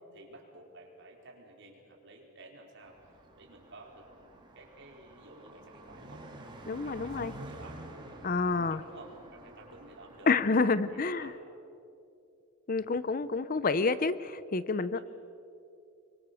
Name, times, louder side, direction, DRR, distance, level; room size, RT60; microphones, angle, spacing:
voice 1, 0.1-6.3 6.7-7.8 8.4-11.4 14.9-15.0, right 2 dB, 55° right, 0 dB, 4.7 m, -53 dB
Car passing by, 2.8-11.4, right 1 dB, 20° right, 3.2 m, -49 dB
voice 2, 6.7-7.3 8.2-8.8 10.3-11.3 12.7-15.0, left 4 dB, 40° left, 15 dB, 0.6 m, -28 dB
25.0 x 24.5 x 7.1 m, 2.6 s
head